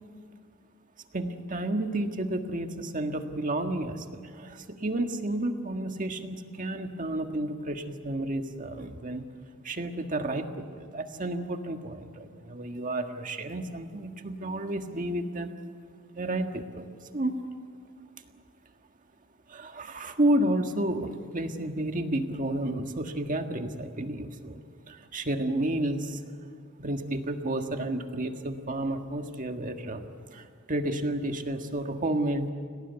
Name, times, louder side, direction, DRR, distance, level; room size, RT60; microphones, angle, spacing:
voice 1, 1.1-9.2 9.6-15.5 16.1-16.8 17.1-17.4 19.5-24.6 24.9-26.2 26.8-32.5, right 1 dB, 40° right, 5 dB, 1.7 m, -31 dB
29.0 x 18.5 x 8.2 m, 2.1 s
head